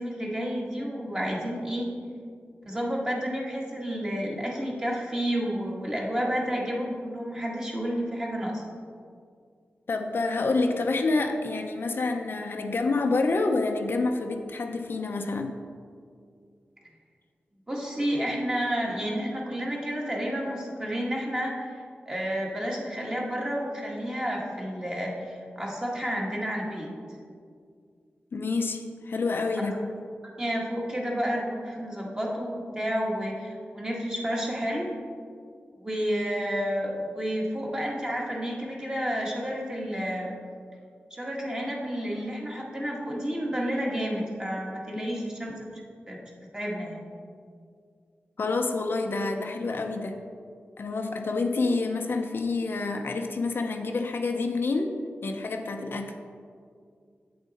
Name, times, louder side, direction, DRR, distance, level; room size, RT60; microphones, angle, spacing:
voice 1, 0.0-1.9 2.7-8.6 17.7-26.9 29.6-29.8 30.4-34.9 35.7-40.4 41.1-45.8 46.1-46.2 46.5-47.0, equal, 20° right, -2 dB, 1.6 m, -30 dB
voice 2, 9.9-15.6 28.3-29.7 44.9-45.0 48.4-50.2 50.8-54.9 55.2-56.1, left 3 dB, 60° left, 4 dB, 0.6 m, -28 dB
8.6 x 7.1 x 4.2 m, 2.2 s
wide cardioid pair, 105°, 4 cm